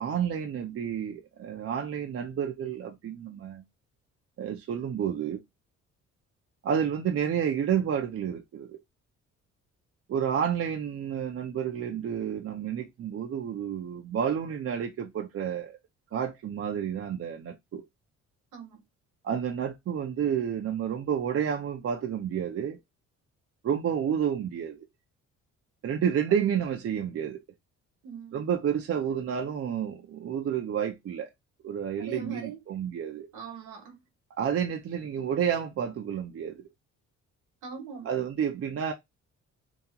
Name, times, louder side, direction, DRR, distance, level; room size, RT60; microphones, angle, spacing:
voice 1, 0.0-3.6 4.4-5.4 6.6-8.8 10.1-15.8 16.1-17.8 19.2-22.8 23.6-24.8 25.8-27.4 28.3-31.3 31.6-33.3 34.4-36.6 38.0-38.9, right 8 dB, 50° right, 0.7 m, -30 dB
voice 2, 28.0-28.4 32.0-32.6 33.3-34.0 37.6-38.1, right 4 dB, 80° right, 1.4 m, -41 dB
2.9 x 2.3 x 3.7 m
cardioid pair, 90°, 30 cm